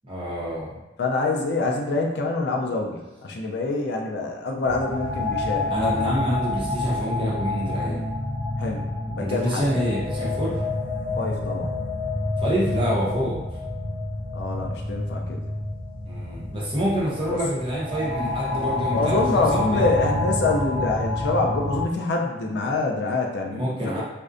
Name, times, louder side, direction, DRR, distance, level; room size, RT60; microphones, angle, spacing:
voice 1, 0.0-0.8 5.7-8.0 9.2-10.6 12.4-13.5 16.1-19.9 23.5-24.0, equal, 30° right, -6 dB, 0.6 m, -27 dB
voice 2, 1.0-5.7 8.6-9.7 11.2-11.7 14.3-15.4 17.3-17.4 18.9-23.6, left 3 dB, 60° left, 1 dB, 0.3 m, -26 dB
sound 1, 4.7-21.8, left 2 dB, 80° right, 0.5 m, -28 dB
2.5 x 2.1 x 2.4 m, 1.1 s
head